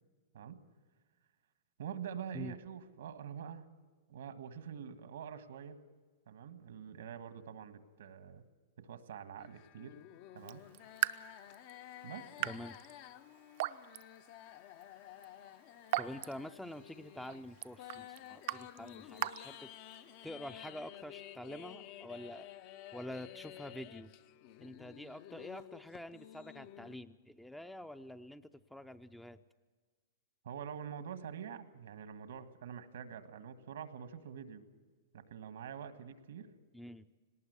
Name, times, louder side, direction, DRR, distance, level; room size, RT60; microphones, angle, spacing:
voice 1, 1.8-3.6 4.1-5.8 6.3-8.4 8.8-10.0 10.3-10.6 12.0-12.6 30.4-34.6 35.1-36.5, right 8 dB, 80° right, 11 dB, 1.6 m, -46 dB
sound 1, 9.4-27.0, left 12 dB, 45° left, 0.7 m, -52 dB
Raindrop / Drip, 10.4-20.2, right 15 dB, 55° right, 0.7 m, -42 dB
voice 2, 12.5-12.8 16.0-19.7 20.2-22.5 22.9-24.1 24.6-29.4 36.7-37.0, left 1 dB, 5° left, 10 dB, 0.5 m, -47 dB
18.5 x 18.5 x 8.1 m, 1.4 s
hypercardioid pair, 140°, 0 cm